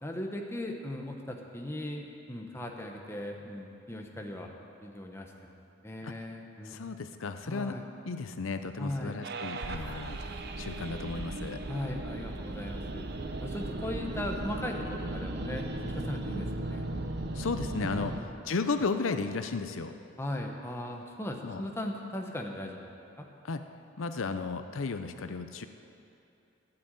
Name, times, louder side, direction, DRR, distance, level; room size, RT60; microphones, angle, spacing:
voice 1, 0.0-4.5 4.8-5.5 5.8-7.0 7.4-7.9 8.8-9.2 11.7-13.0 13.4-16.9 18.1-18.4 20.2-23.3, left 1 dB, 15° left, 1 dB, 1.1 m, -38 dB
voice 2, 6.6-7.7 8.1-10.2 10.6-11.6 17.3-19.9 21.4-21.6 23.4-23.6 24.0-25.7, left 4 dB, 85° left, 9 dB, 0.6 m, -34 dB
sound 1, 9.2-18.2, right 2 dB, 55° right, 0.8 m, -37 dB
12.5 x 7.8 x 9.1 m, 2.7 s
head